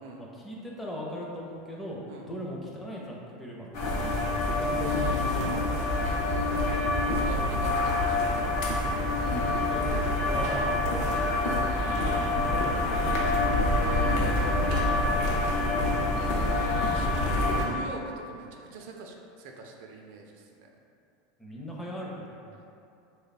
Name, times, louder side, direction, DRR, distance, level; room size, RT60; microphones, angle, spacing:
voice 1, 0.1-6.2 9.2-10.7 11.8-13.3 14.1-15.3 21.4-22.7, equal, 5° left, -4 dB, 0.5 m, -39 dB
sound 1, 3.7-17.6, left 2 dB, 55° left, 0.6 m, -26 dB
voice 2, 4.8-9.0 13.6-16.6 16.8-20.7, right 3 dB, 65° right, 1 dB, 0.4 m, -43 dB
3.1 x 2.2 x 4.0 m, 2.6 s
supercardioid pair, 145°, 0 cm